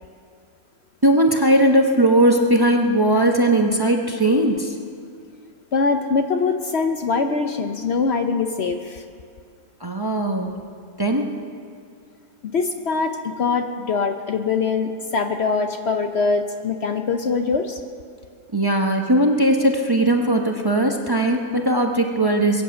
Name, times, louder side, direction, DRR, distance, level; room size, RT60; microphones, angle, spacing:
voice 1, 1.0-4.7 9.8-10.6 11.0-11.4 18.5-22.6, right 1 dB, 20° right, 3 dB, 0.8 m, -19 dB
voice 2, 5.7-9.0 12.4-17.8, left 4 dB, 55° left, 6 dB, 0.9 m, -23 dB
22.0 x 8.3 x 7.6 m, 2.2 s
omnidirectional pair, 1.5 m